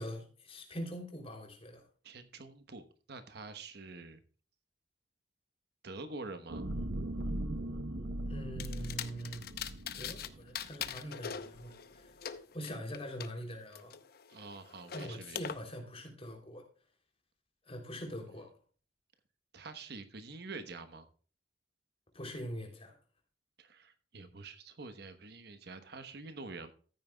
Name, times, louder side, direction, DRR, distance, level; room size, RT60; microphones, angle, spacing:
voice 1, 0.0-1.8 8.2-9.5 9.9-12.1 12.5-13.9 14.9-16.7 17.6-18.5 22.1-22.9, equal, 35° left, 2 dB, 3.2 m, -43 dB
voice 2, 2.0-4.2 5.8-6.6 14.3-15.5 19.5-21.1 23.6-26.7, right 3 dB, 65° right, 10 dB, 1.1 m, -46 dB
sound 1, 6.5-11.0 11.5-11.6, right 1 dB, 85° right, 0.9 m, -39 dB
sound 2, 8.6-10.3 10.5-13.3 13.7-15.5, left 8 dB, 60° left, 0.7 m, -42 dB
14.0 x 9.3 x 2.3 m, 0.40 s
head